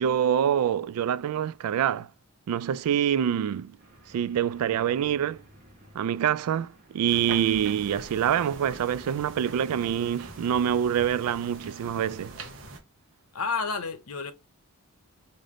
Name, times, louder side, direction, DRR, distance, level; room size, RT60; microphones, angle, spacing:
voice 1, 0.0-2.1 2.5-3.7 4.1-5.4 5.9-12.4, right 9 dB, 75° right, 0.3 m, -26 dB
sound 1, 3.8-11.1, equal, 40° right, 1.2 m, -54 dB
sound 2, 7.1-12.8, right 2 dB, 60° right, 0.8 m, -43 dB
voice 2, 13.3-14.3, left 4 dB, 75° left, 0.8 m, -30 dB
3.4 x 2.6 x 3.6 m
head